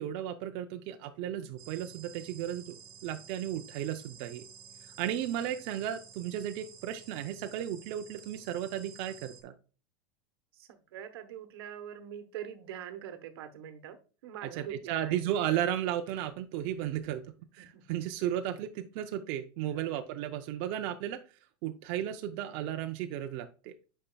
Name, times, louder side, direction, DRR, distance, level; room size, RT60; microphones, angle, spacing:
voice 1, 0.0-4.4 5.0-9.5 14.6-17.2 17.5-21.2 21.6-23.7, right 11 dB, 45° right, 7 dB, 0.5 m, -34 dB
sound 1, 1.6-9.4, right 7 dB, 25° right, 1.0 m, -52 dB
voice 2, 4.9-5.3 10.5-15.3 17.6-18.0 19.7-19.9, right 9 dB, 80° right, 10 dB, 1.0 m, -44 dB
8.7 x 5.4 x 2.2 m, 0.35 s
supercardioid pair, 160°, 13 cm